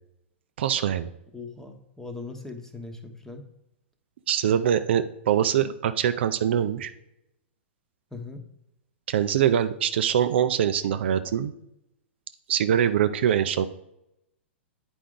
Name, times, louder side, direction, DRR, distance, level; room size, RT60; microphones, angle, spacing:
voice 1, 0.6-1.1 4.3-6.9 9.1-11.5 12.5-13.7, right 9 dB, 60° right, 10 dB, 0.4 m, -23 dB
voice 2, 1.3-3.4 8.1-8.4, left 3 dB, 5° left, 5 dB, 1.0 m, -39 dB
8.7 x 4.9 x 3.8 m, 0.85 s
hypercardioid pair, 105°, 7 cm